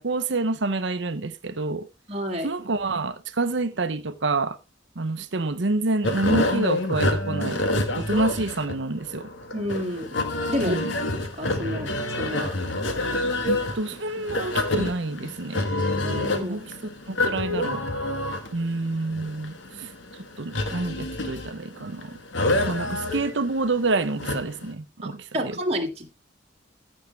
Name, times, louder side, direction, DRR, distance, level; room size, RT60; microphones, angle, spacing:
voice 1, 0.0-1.9 2.4-4.6 5.0-7.7 8.0-9.3 10.6-10.9 13.5-15.7 16.4-16.7 17.1-17.9 18.5-19.9 20.4-22.2 22.7-25.6, right 3 dB, 70° right, 0.9 m, -28 dB
voice 2, 2.1-2.5 9.5-10.1 10.5-10.8 11.4-11.9 12.2-12.5 16.0-16.6 25.0-26.2, equal, 35° right, 2.2 m, -29 dB
sound 1, 6.0-24.7, left 2 dB, 80° left, 1.6 m, -28 dB
15.0 x 6.4 x 3.3 m
head